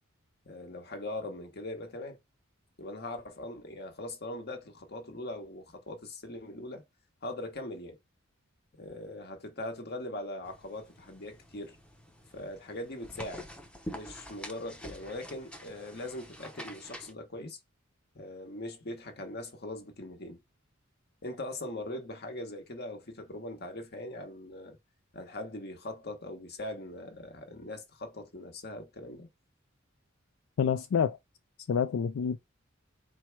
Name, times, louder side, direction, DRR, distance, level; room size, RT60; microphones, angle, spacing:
voice 1, 0.4-2.2 2.8-6.8 7.2-8.0 8.8-11.8 12.3-13.5 13.9-17.6 18.1-20.4 21.2-24.8 25.1-29.3, left 1 dB, 50° left, 1.1 m, -41 dB
sound 1, 10.4-17.1, equal, 5° left, 0.6 m, -47 dB
voice 2, 30.6-31.2 31.7-32.4, left 7 dB, 80° left, 0.4 m, -27 dB
4.5 x 2.1 x 4.5 m
head